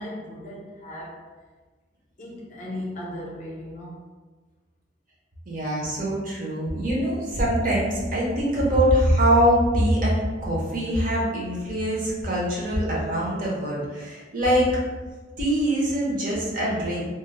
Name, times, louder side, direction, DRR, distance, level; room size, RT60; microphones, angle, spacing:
voice 1, 0.0-1.3 2.2-4.1, left 1 dB, 40° left, -3 dB, 0.5 m, -37 dB
voice 2, 5.5-14.7 15.4-17.0, equal, 45° right, -5 dB, 0.6 m, -23 dB
2.3 x 2.0 x 3.1 m, 1.3 s
head